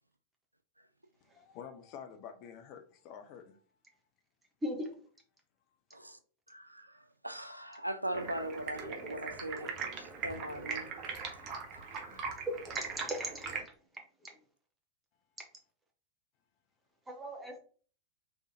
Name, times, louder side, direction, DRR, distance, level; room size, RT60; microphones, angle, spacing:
voice 1, 1.2-3.6 12.0-12.3, left 8 dB, 40° left, 0.6 m, -49 dB
voice 2, 4.6-4.9 12.4-13.5 14.2-14.3 17.1-17.6, equal, 10° right, 1.1 m, -38 dB
voice 3, 6.5-10.9 11.3-11.4 11.7-12.1, right 1 dB, 85° right, 0.4 m, -40 dB
Stream, 8.1-13.6, right 5 dB, 35° right, 0.9 m, -40 dB
3.5 x 3.3 x 2.7 m
figure-of-eight pair, 90°, 0 cm